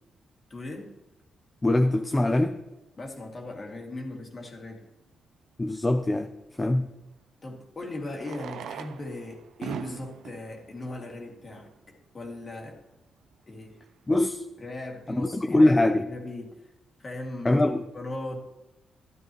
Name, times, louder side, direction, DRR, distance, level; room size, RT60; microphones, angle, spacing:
voice 1, 0.5-0.9 3.0-4.9 7.4-12.8 13.5-13.8 14.6-16.7 17.0-17.7 17.9-18.4, left 2 dB, 35° left, 1 dB, 2.3 m, -38 dB
voice 2, 1.6-2.6 5.6-6.3 6.6-6.9 14.1-14.4 15.1-16.0 17.4-17.8, left 1 dB, 20° left, 6 dB, 0.6 m, -22 dB
Fireworks, 4.6-4.7 7.0-7.1 8.1-11.9 12.6-12.7 12.9-13.0 13.2-13.3 13.9-14.1, right 9 dB, 85° right, 0.6 m, -41 dB
13.0 x 12.0 x 3.1 m, 0.98 s
cardioid pair, 100°, 0 cm